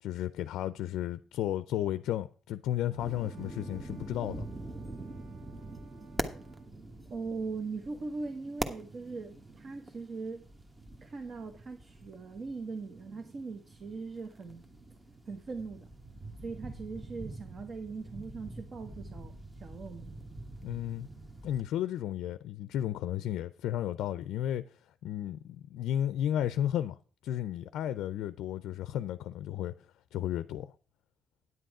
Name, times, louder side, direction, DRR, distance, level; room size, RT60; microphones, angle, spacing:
voice 1, 0.0-4.5 20.6-21.1 21.4-27.0 27.2-29.7 30.1-30.7, left 11 dB, 85° left, 0.4 m, -33 dB
Brass instrument, 2.9-6.7, right 6 dB, 80° right, 1.4 m, -62 dB
sound 1, 3.0-21.6, right 2 dB, 20° right, 1.3 m, -44 dB
voice 2, 7.1-10.4 11.0-14.6 15.3-15.9 16.4-20.2, right 4 dB, 50° right, 1.2 m, -40 dB
9.6 x 7.7 x 4.8 m
cardioid pair, 90°, 0 cm